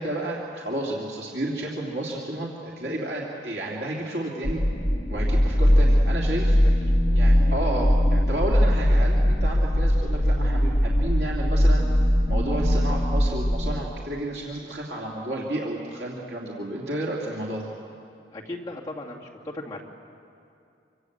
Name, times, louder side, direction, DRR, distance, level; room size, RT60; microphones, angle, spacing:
voice 1, 0.0-4.6 5.1-6.6 7.1-12.0 12.3-17.7, right 1 dB, 65° right, -3 dB, 2.8 m, -31 dB
Internal Chemistries, 4.4-13.8, equal, 35° left, 1.9 m, -21 dB
voice 2, 18.3-19.8, left 2 dB, 20° left, -3 dB, 2.5 m, -36 dB
26.5 x 25.5 x 8.1 m, 2.5 s
head